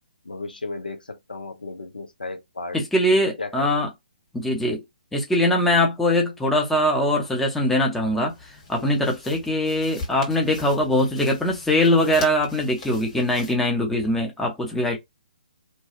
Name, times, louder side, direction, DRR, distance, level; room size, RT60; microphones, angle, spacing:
voice 1, 0.2-2.8 3.4-3.5 8.7-9.0, left 3 dB, 75° left, 0.7 m, -34 dB
voice 2, 2.7-3.9 4.3-4.8 5.1-8.3 8.7-15.0, left 1 dB, 5° left, 0.6 m, -22 dB
sound 1, 8.3-13.5, left 3 dB, 35° left, 1.6 m, -41 dB
2.9 x 2.3 x 2.9 m
figure-of-eight pair, 135°, 5 cm